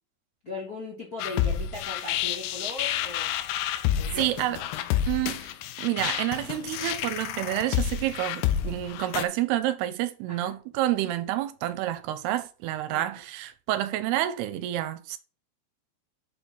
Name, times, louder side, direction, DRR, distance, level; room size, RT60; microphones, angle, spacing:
voice 1, 0.4-3.3 4.0-4.4 10.3-10.6 12.9-13.0, left 2 dB, 45° left, 1.2 m, -38 dB
sound 1, 1.2-9.2, left 10 dB, 90° left, 2.7 m, -29 dB
voice 2, 4.2-4.6 5.1-5.5 5.8-15.2, right 14 dB, 80° right, 2.6 m, -29 dB
6.8 x 4.5 x 5.4 m
omnidirectional pair, 4.7 m